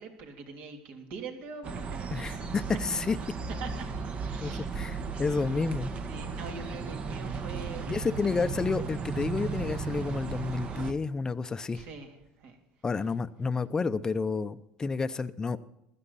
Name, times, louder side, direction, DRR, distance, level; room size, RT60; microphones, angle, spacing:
voice 1, 0.0-2.5 3.6-3.9 4.2-4.8 6.0-8.5 11.7-12.6, right 4 dB, 60° right, 3 dB, 3.1 m, -44 dB
sound 1, 1.6-10.9, right 5 dB, 35° right, 1.2 m, -35 dB
voice 2, 2.1-2.6 3.1-3.2 4.4-5.9 7.9-11.8 12.8-15.6, left 4 dB, 20° left, 11 dB, 0.7 m, -30 dB
15.5 x 13.0 x 4.2 m, 0.88 s
supercardioid pair, 105°, 3 cm